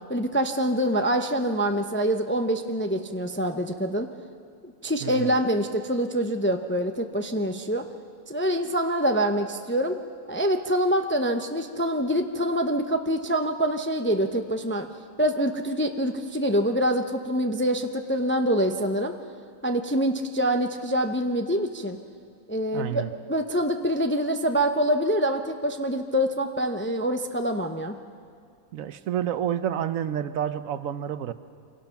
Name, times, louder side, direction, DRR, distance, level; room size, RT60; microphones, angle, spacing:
voice 1, 0.1-4.1 4.6-7.9 8.3-10.0 10.3-14.9 15.2-19.1 19.6-22.0 22.5-27.9, equal, 15° left, 5 dB, 0.5 m, -25 dB
voice 2, 5.0-5.4 22.7-23.1 28.7-31.3, right 10 dB, 80° right, 12 dB, 1.1 m, -29 dB
26.0 x 17.5 x 5.8 m, 2.3 s
omnidirectional pair, 1.4 m